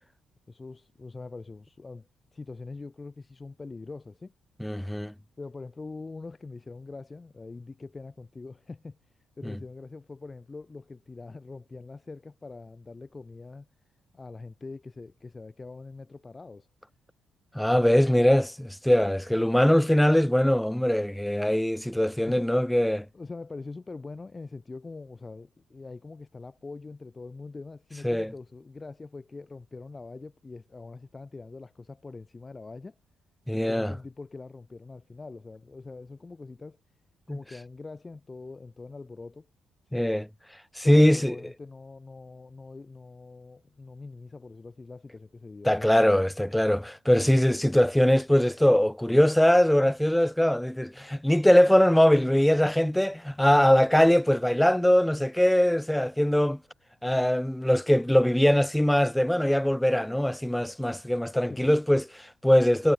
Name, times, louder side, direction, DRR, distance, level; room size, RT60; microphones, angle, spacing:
voice 1, 0.5-4.3 5.4-9.0 9.4-13.7 14.1-16.7 22.3-22.5 23.1-32.9 33.5-36.8 37.3-39.5 39.9-40.0 40.8-45.9 61.4-61.7, left 3 dB, 25° left, 1.3 m, -43 dB
voice 2, 4.6-5.1 9.4-9.5 17.5-23.1 28.0-28.3 33.5-33.9 37.3-37.4 39.9-40.3 40.8-41.3 45.6-56.6 57.0-62.9, equal, 5° left, 0.5 m, -22 dB
cardioid pair, 90°, 0 cm